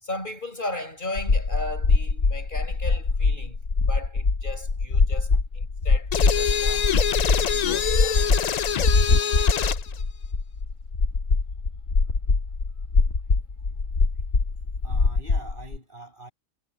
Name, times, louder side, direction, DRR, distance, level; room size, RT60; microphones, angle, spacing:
voice 1, 0.0-3.6 3.9-8.5, left 2 dB, 40° left, 5.9 m, -37 dB
sound 1, 1.2-15.8, left 3 dB, 60° left, 2.1 m, -23 dB
sound 2, 6.1-9.9, left 8 dB, 80° left, 0.3 m, -25 dB
voice 2, 14.8-16.3, right 2 dB, 40° right, 7.1 m, -43 dB
omnidirectional pair, 1.4 m